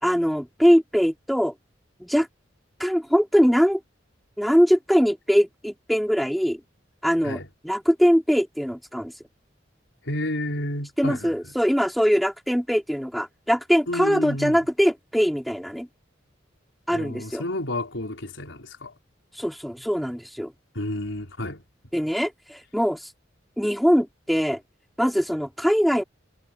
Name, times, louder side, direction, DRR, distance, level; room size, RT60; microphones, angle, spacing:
voice 1, 0.0-1.5 2.0-2.3 2.8-3.8 4.4-6.6 7.0-7.4 7.6-9.1 11.0-15.9 16.9-17.4 19.3-20.5 21.9-23.1 23.6-24.6 25.0-26.0, equal, ahead, 3.1 m, -22 dB
voice 2, 10.0-11.5 13.9-14.7 16.9-18.9 20.7-21.6, left 1 dB, 85° left, 4.9 m, -31 dB
head